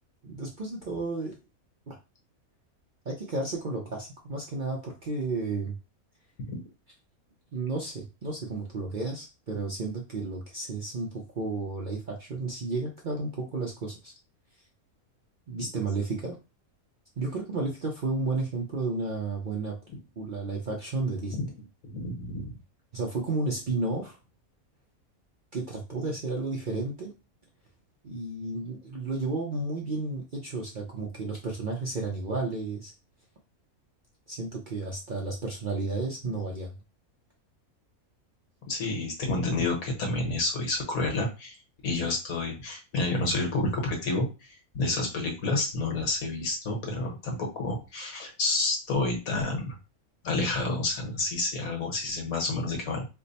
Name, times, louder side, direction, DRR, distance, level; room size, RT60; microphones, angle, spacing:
voice 1, 0.2-1.3 1.9-2.0 3.1-5.7 7.5-14.1 15.5-16.4 17.2-19.7 20.2-21.5 22.9-24.2 25.5-27.1 28.0-32.9 34.3-36.7, right 3 dB, 50° right, -2 dB, 0.6 m, -32 dB
voice 2, 21.8-22.5 38.7-41.6 41.8-49.7 50.2-53.1, left 2 dB, 70° left, 1 dB, 1.5 m, -29 dB
3.3 x 2.1 x 4.0 m, 0.28 s
omnidirectional pair, 1.5 m